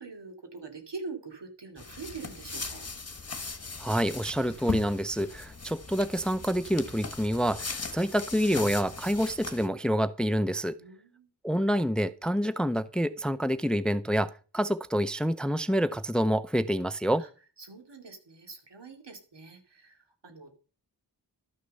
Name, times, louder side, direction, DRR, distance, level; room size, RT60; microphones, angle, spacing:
voice 1, 0.0-2.9 10.8-11.3 17.2-17.3 17.6-20.5, right 4 dB, 80° right, 2.6 m, -44 dB
sound 1, 1.8-9.7, left 4 dB, 35° left, 1.5 m, -39 dB
voice 2, 3.8-10.8 11.4-17.2, equal, ahead, 0.5 m, -27 dB
12.5 x 6.5 x 6.6 m
wide cardioid pair, 65°, 41 cm